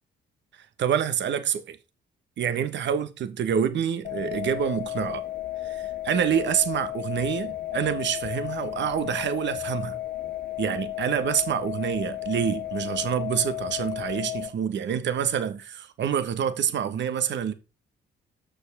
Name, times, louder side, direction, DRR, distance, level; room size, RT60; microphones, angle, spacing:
voice 1, 0.8-1.8 2.4-5.2 5.6-10.0 10.6-17.5, right 8 dB, 65° right, 1.3 m, -27 dB
sound 1, 4.0-14.5, left 14 dB, 50° left, 1.2 m, -33 dB
6.5 x 5.2 x 6.7 m
cardioid pair, 90°, 20 cm